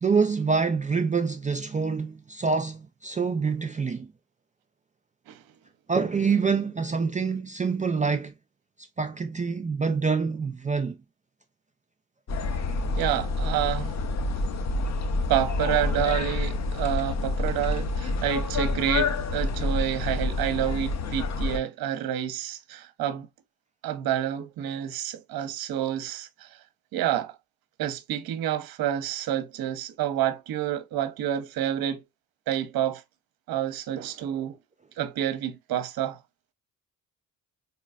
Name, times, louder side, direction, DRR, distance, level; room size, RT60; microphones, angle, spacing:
voice 1, 0.0-4.1 5.9-8.3 9.0-11.0, right 5 dB, 20° right, 0.3 m, -26 dB
sound 1, 12.3-21.6, left 3 dB, 35° left, 0.6 m, -28 dB
voice 2, 12.9-13.9 15.3-23.3 23.8-26.6 26.9-27.4 27.8-32.0 32.5-33.0 33.5-34.6 35.0-36.2, right 11 dB, 50° right, 0.7 m, -29 dB
3.9 x 2.9 x 2.3 m
hypercardioid pair, 45°, 47 cm